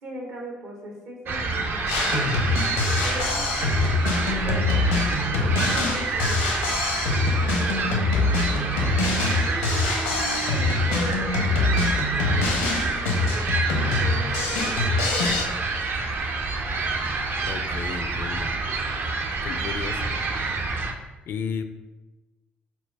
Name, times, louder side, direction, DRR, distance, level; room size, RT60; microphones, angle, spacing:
voice 1, 0.0-2.4 3.0-4.7 5.2-6.5 7.4-8.7 9.5-11.5 12.1-13.5 14.0-15.1, right 1 dB, 65° right, 0 dB, 1.0 m, -39 dB
sound 1, 1.3-20.9, right 3 dB, 50° right, 0.5 m, -28 dB
Drum kit, 1.9-15.4, left 3 dB, 85° left, 0.7 m, -24 dB
voice 2, 17.4-18.6 19.4-20.2 21.3-21.6, left 6 dB, 55° left, 8 dB, 0.3 m, -33 dB
4.5 x 2.1 x 4.1 m, 1.2 s
hypercardioid pair, 50°, 5 cm